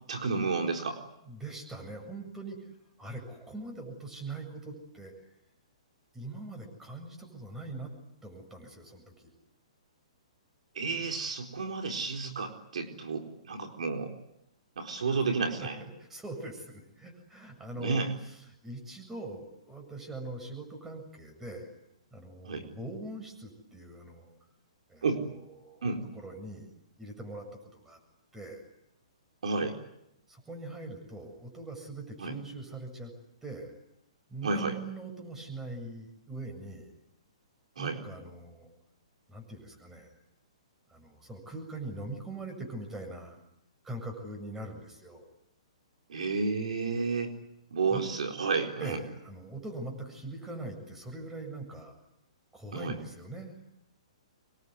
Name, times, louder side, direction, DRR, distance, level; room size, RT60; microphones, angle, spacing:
voice 1, 0.1-1.0 10.7-14.1 14.8-15.8 17.8-18.1 22.4-22.6 25.0-25.2 25.8-26.0 29.4-29.8 32.2-32.3 34.4-34.8 37.8-38.0 46.1-47.3 47.7-49.0 52.7-53.0, right 4 dB, 75° right, 4 dB, 4.3 m, -31 dB
voice 2, 1.2-2.6 3.0-5.1 6.1-7.9 8.2-9.3 15.1-15.2 15.6-21.7 22.1-24.3 24.9-25.9 26.1-26.7 27.0-27.5 27.7-28.0 28.3-28.6 30.3-33.1 33.4-33.7 34.3-36.9 37.8-38.7 39.3-40.1 40.9-43.4 43.8-45.2 47.9-48.0 48.8-51.9 52.5-53.6, right 2 dB, 10° right, 4 dB, 7.6 m, -42 dB
25.5 x 23.0 x 9.7 m, 0.85 s
hypercardioid pair, 140°, 4 cm